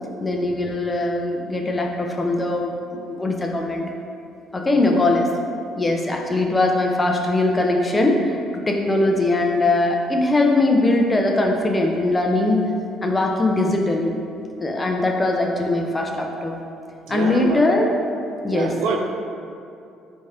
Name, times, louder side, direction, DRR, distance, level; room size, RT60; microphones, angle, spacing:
voice 1, 0.2-3.8 4.5-5.3 5.8-12.6 13.0-14.2 14.6-16.6 17.1-17.9 18.4-18.7, left 2 dB, 25° left, 2 dB, 0.6 m, -21 dB
voice 2, 4.6-5.1 17.0-17.6 18.5-19.0, right 4 dB, 75° right, 3 dB, 0.4 m, -27 dB
4.0 x 3.3 x 3.5 m, 2.5 s
supercardioid pair, 70°, 0 cm